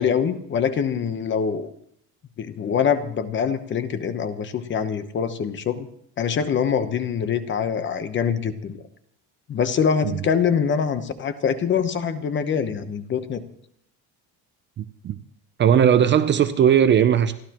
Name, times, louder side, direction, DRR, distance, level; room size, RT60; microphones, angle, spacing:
voice 1, 0.0-1.7 2.4-5.9 6.2-8.7 9.5-13.4, left 7 dB, 30° left, 1.0 m, -24 dB
voice 2, 14.8-15.2 15.6-17.4, right 9 dB, 30° right, 0.6 m, -18 dB
29.0 x 12.5 x 3.0 m
cardioid pair, 165°, 38 cm